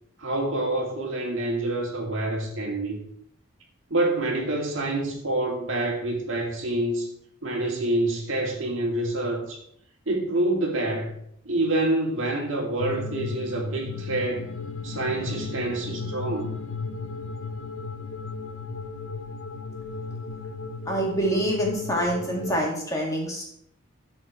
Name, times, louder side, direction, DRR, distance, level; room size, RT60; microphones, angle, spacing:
voice 1, 0.2-3.0 3.9-7.1 7.4-9.6 10.1-11.2 11.5-14.5 14.8-16.5, right 2 dB, 70° right, 0 dB, 2.2 m, -27 dB
sound 1, 12.8-22.6, left 4 dB, 70° left, 0.7 m, -35 dB
voice 2, 20.9-23.4, equal, 15° left, -1 dB, 1.9 m, -26 dB
13.0 x 4.5 x 4.4 m, 0.70 s
head